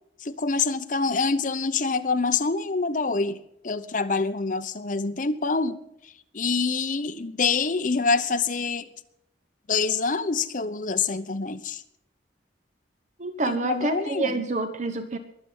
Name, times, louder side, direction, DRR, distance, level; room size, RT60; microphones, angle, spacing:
voice 1, 0.2-3.4 3.6-5.8 6.3-8.9 9.7-11.8 13.5-14.4, left 4 dB, 45° left, 0.8 m, -26 dB
voice 2, 13.2-15.2, right 2 dB, 40° right, 0.9 m, -28 dB
22.0 x 7.7 x 5.5 m
head